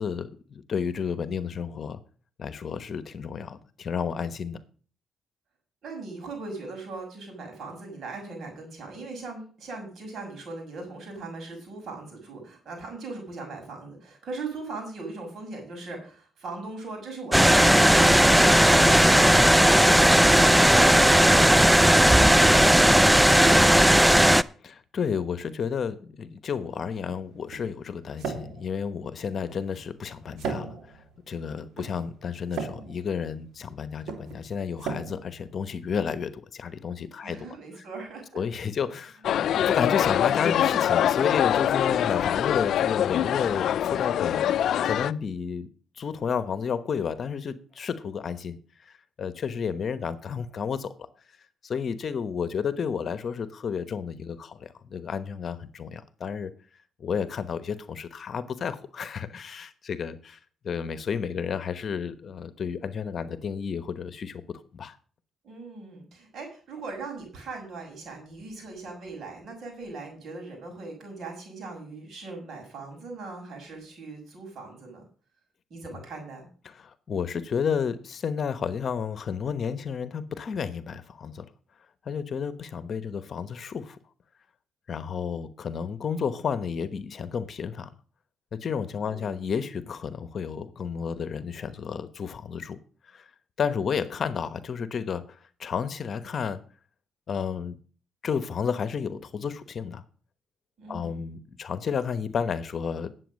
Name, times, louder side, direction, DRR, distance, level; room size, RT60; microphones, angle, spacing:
voice 1, 0.0-2.0 2.4-4.6 24.6-30.8 31.3-37.5 38.3-39.2 39.5-44.4 44.8-45.7 46.0-51.1 51.6-56.5 57.0-60.4 60.6-65.0 76.6-81.5 82.0-84.0 84.9-87.9 88.5-92.8 93.1-93.3 93.6-96.6 97.3-97.8 98.2-100.0 100.9-103.1, left 6 dB, 50° left, 1.0 m, -31 dB
voice 2, 5.8-20.3 37.2-38.4 39.3-39.5 65.4-75.0 75.7-76.5 89.0-89.3 100.8-101.2, right 3 dB, 60° right, 6.3 m, -39 dB
sound 1, 17.3-24.4, equal, 5° right, 0.4 m, -17 dB
sound 2, 26.6-36.4, right 5 dB, 80° right, 2.4 m, -39 dB
sound 3, 39.2-45.1, left 10 dB, 70° left, 0.4 m, -24 dB
10.0 x 7.8 x 6.4 m
cardioid pair, 90°, 0 cm